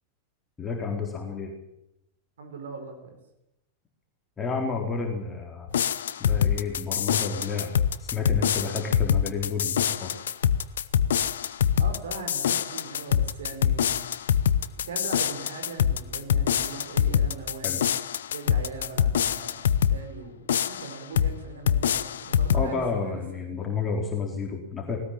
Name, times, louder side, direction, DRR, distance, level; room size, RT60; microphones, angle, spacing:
voice 1, 0.6-1.5 4.4-5.7 6.2-7.7 8.0-10.1 17.6-17.8 22.5-25.0, left 5 dB, 15° left, 1 dB, 4.1 m, -30 dB
voice 2, 2.4-3.2 11.8-14.0 14.8-17.9 18.3-23.6, right 4 dB, 65° right, 5 dB, 4.5 m, -40 dB
sound 1, 5.7-20.0 20.5-21.4 21.7-22.7, left 9 dB, 65° left, 0.9 m, -25 dB
20.0 x 18.5 x 8.9 m, 0.86 s
figure-of-eight pair, 90°, 0 cm